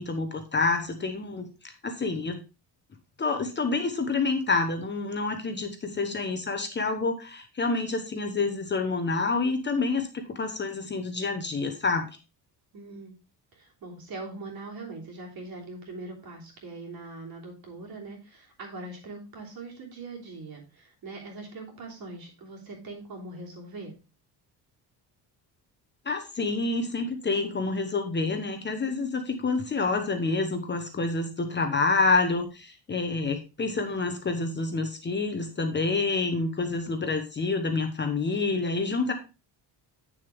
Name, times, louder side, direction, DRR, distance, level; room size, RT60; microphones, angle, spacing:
voice 1, 0.0-1.5 1.8-2.4 3.2-12.1 26.1-39.1, left 3 dB, 25° left, 6 dB, 1.0 m, -28 dB
voice 2, 12.7-13.1 13.5-24.0, right 3 dB, 55° right, 0 dB, 3.1 m, -41 dB
8.8 x 6.7 x 3.4 m, 0.29 s
cardioid pair, 160°, 43 cm